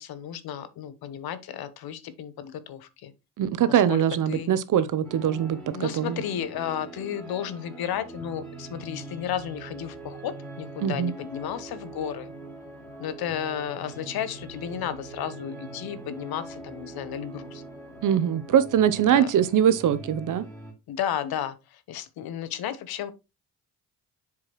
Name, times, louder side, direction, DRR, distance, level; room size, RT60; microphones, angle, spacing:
voice 1, 0.0-3.1 3.7-4.0 4.3-4.5 5.7-12.3 13.0-17.6 19.1-19.3 20.9-23.1, left 10 dB, 65° left, 0.9 m, -33 dB
voice 2, 3.4-6.2 10.8-11.1 18.0-20.4, right 9 dB, 50° right, 0.7 m, -22 dB
sound 1, 5.0-20.7, right 2 dB, 5° left, 2.9 m, -42 dB
7.2 x 4.8 x 3.0 m
cardioid pair, 110°, 40 cm